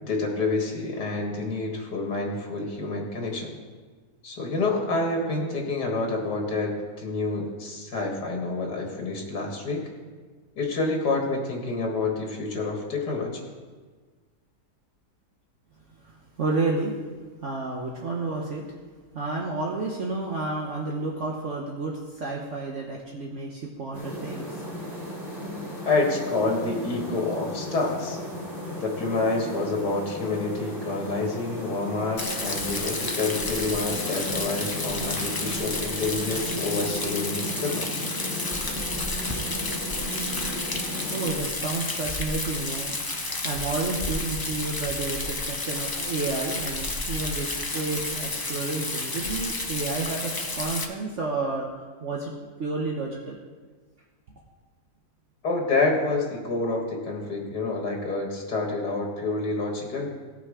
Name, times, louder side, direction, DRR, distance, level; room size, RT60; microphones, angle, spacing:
voice 1, 0.0-3.5 4.2-9.8 10.6-13.4 25.8-28.2 28.8-38.1 55.4-60.1, left 3 dB, 80° left, 0 dB, 2.3 m, -28 dB
voice 2, 16.0-16.9 17.4-18.6 19.1-24.6 41.1-42.9 43.4-52.3 52.6-53.4, right 3 dB, 50° right, -1 dB, 1.2 m, -31 dB
sound 1, 23.9-41.4, equal, 15° left, 3.3 m, -36 dB
Rain, 32.2-50.8, left 2 dB, 30° left, 0.4 m, -31 dB
17.0 x 6.0 x 4.8 m, 1.4 s
omnidirectional pair, 1.7 m